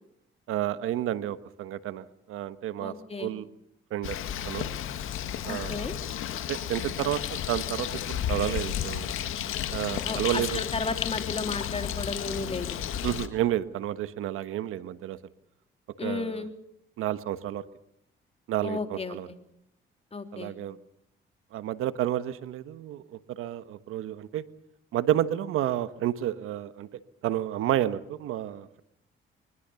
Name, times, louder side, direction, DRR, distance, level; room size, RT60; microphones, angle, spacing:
voice 1, 0.5-2.9 3.2-3.5 3.9-4.2 4.4-4.7 5.4-5.9 6.5-7.2 7.5-9.1 9.7-10.6 13.0-15.2 16.0-16.4 17.0-17.6 18.5-19.3 20.3-20.8 21.5-24.4 24.9-26.9 27.2-28.8, right 12 dB, 85° right, 13 dB, 1.3 m, -30 dB
voice 2, 2.8-3.3 5.5-6.0 10.0-12.8 16.0-16.5 18.6-19.3 20.1-20.5, left 3 dB, 30° left, 6 dB, 3.4 m, -34 dB
Bird, 4.0-13.3, left 10 dB, 75° left, 2.0 m, -32 dB
24.0 x 21.0 x 7.0 m, 0.77 s
cardioid pair, 80°, 21 cm